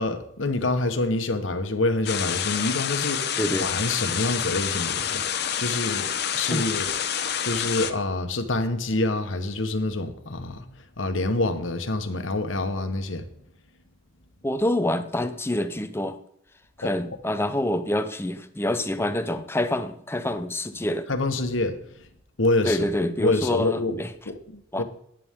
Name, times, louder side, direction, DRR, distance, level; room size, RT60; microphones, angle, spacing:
voice 1, 0.0-5.2 5.6-6.1 6.3-6.9 7.4-10.6 11.0-13.3 16.8-16.9 21.1-21.8 22.4-22.9 23.2-24.8, left 2 dB, 85° left, 1.3 m, -26 dB
sound 1, 2.1-7.9, left 8 dB, 55° left, 0.9 m, -28 dB
voice 2, 3.4-3.7 6.5-6.7 14.4-16.2 16.8-21.1 22.6-24.1 24.7-24.8, left 1 dB, 10° left, 0.6 m, -26 dB
14.0 x 10.0 x 3.7 m
head